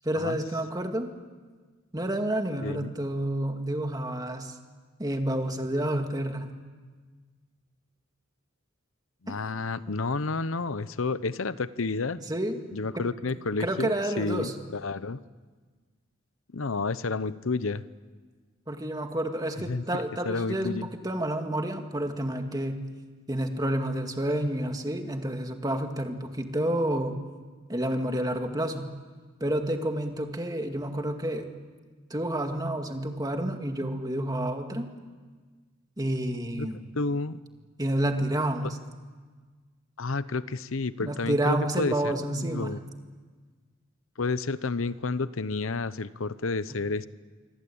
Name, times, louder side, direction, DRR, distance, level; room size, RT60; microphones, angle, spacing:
voice 1, 0.0-1.1 1.9-4.5 5.0-6.5 9.3-9.4 12.2-12.6 13.0-13.1 13.6-14.5 18.7-22.8 23.3-27.1 27.7-28.9 29.4-31.5 32.1-34.9 36.0-36.9 37.8-38.8 41.0-42.7, right 1 dB, 20° right, 4 dB, 2.2 m, -29 dB
voice 2, 2.6-2.9 9.2-12.2 12.7-13.9 14.2-15.2 16.5-17.8 19.7-20.9 36.5-36.7 36.9-37.4 38.6-38.7 40.0-42.8 44.2-47.1, left 3 dB, 75° left, 15 dB, 0.8 m, -30 dB
26.5 x 24.5 x 8.7 m, 1.5 s
head